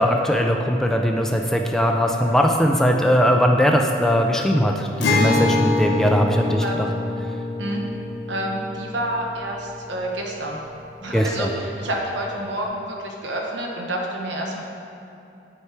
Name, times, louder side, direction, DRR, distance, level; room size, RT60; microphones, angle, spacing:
voice 1, 0.0-6.9 11.1-11.5, equal, ahead, 2 dB, 0.3 m, -20 dB
Acoustic guitar, 5.0-10.5, left 2 dB, 70° left, 0.9 m, -25 dB
voice 2, 8.3-10.6 11.0-14.6, right 1 dB, 75° right, 0 dB, 1.0 m, -28 dB
8.3 x 4.7 x 4.6 m, 2.8 s
head